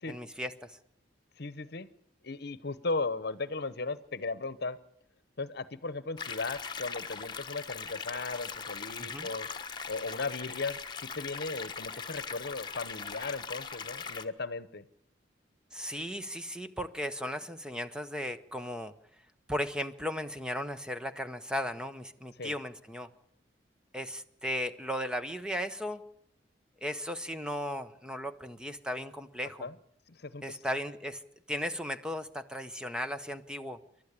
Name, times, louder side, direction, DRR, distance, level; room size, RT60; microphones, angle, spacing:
voice 1, 0.1-0.8 9.0-9.3 15.7-18.9 19.5-23.1 23.9-26.0 26.8-29.7 30.4-31.2 31.5-33.8, equal, 5° right, 9 dB, 0.8 m, -36 dB
voice 2, 1.4-1.9 2.2-4.8 5.4-9.5 9.9-14.8 22.4-22.5 29.6-29.7 30.1-30.6, left 3 dB, 60° left, 16 dB, 1.0 m, -36 dB
sound 1, 6.2-14.2, left 5 dB, 25° left, 1.3 m, -40 dB
28.5 x 12.0 x 8.3 m, 0.71 s
head